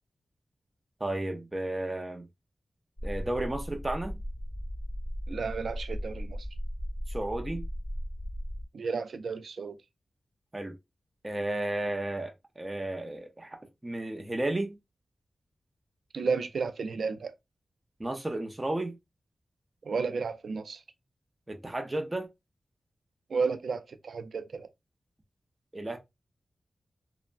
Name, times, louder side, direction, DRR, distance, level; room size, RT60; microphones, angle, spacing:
voice 1, 1.0-2.3 3.0-4.2 7.1-7.7 10.5-10.8 11.2-13.5 13.8-14.8 18.0-19.0 21.5-22.3 25.7-26.0, right 1 dB, 25° right, 0.5 m, -33 dB
sound 1, 3.0-8.6, equal, 25° left, 1.1 m, -37 dB
voice 2, 5.3-6.4 8.7-9.8 16.1-17.3 19.8-20.8 23.3-24.7, right 5 dB, 85° right, 0.3 m, -32 dB
3.2 x 2.0 x 2.4 m
cardioid pair, 65°, 0 cm